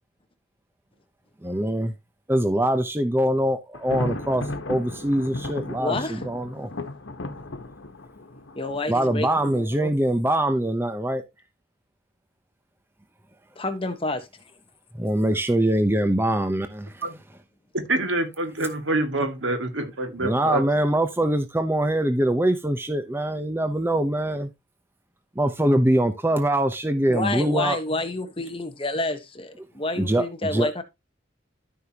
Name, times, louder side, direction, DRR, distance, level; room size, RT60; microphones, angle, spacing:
voice 1, 1.4-1.9 2.3-6.7 8.9-11.2 15.0-17.0 20.2-24.5 25.4-27.8 30.0-30.3 30.5-30.8, right 1 dB, 10° right, 0.8 m, -23 dB
Thunder, 3.7-9.6, left 2 dB, 90° left, 1.3 m, -35 dB
voice 2, 5.8-6.2 8.5-9.9 13.6-14.3 27.1-30.8, left 2 dB, 30° left, 1.3 m, -29 dB
voice 3, 17.7-20.6, right 2 dB, 85° right, 2.2 m, -26 dB
13.0 x 5.6 x 2.9 m
head